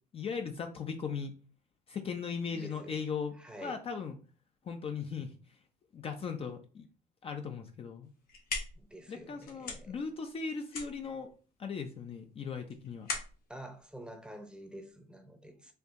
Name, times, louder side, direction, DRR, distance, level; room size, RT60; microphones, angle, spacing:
voice 1, 0.1-1.3 1.9-3.3 3.6-4.2 4.6-5.6 5.9-6.8 7.2-8.1 9.1-11.3 11.6-13.1, left 5 dB, 35° left, 0.4 m, -38 dB
voice 2, 2.5-3.0 3.4-3.8 8.8-10.0 13.5-15.7, right 1 dB, 5° right, 0.7 m, -48 dB
sound 1, 8.0-14.9, left 4 dB, 60° left, 1.2 m, -43 dB
4.4 x 2.7 x 2.5 m
cardioid pair, 110°, 17 cm